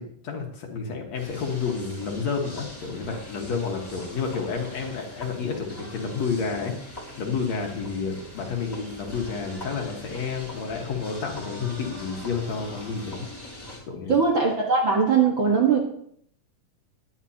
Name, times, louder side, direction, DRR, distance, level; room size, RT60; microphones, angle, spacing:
voice 1, 0.0-13.3 13.9-14.1, left 5 dB, 55° left, 1 dB, 2.5 m, -30 dB
sound 1, 1.1-13.8, left 1 dB, 10° left, 2.0 m, -42 dB
voice 2, 14.1-15.8, right 5 dB, 50° right, -1 dB, 1.7 m, -20 dB
18.5 x 11.0 x 2.9 m, 0.68 s
omnidirectional pair, 3.9 m